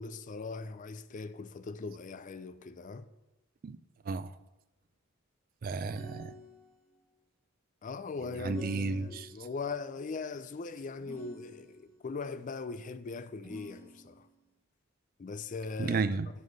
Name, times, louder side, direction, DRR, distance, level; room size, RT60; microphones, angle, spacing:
voice 1, 0.0-3.1 7.8-14.3 15.2-16.0, left 4 dB, 35° left, 0.4 m, -40 dB
voice 2, 4.0-4.4 5.6-6.3 8.4-9.3 15.8-16.3, right 4 dB, 40° right, 0.3 m, -33 dB
sound 1, 5.8-6.9 8.4-9.6 11.0-12.1 13.4-14.4, right 1 dB, 10° right, 3.3 m, -49 dB
7.8 x 5.5 x 6.4 m
head